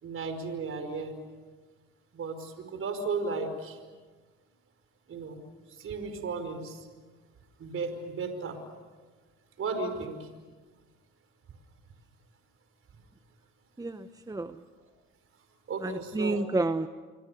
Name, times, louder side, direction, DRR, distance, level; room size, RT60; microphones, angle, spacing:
voice 1, 0.0-1.1 2.1-3.8 5.1-5.4 5.8-6.8 7.6-8.6 9.6-10.3 15.7-16.4, right 4 dB, 45° right, 7 dB, 5.1 m, -34 dB
voice 2, 13.8-14.6 15.8-16.9, right 2 dB, 10° right, 10 dB, 1.0 m, -30 dB
28.5 x 24.5 x 7.0 m, 1.4 s
supercardioid pair, 80°, 29 cm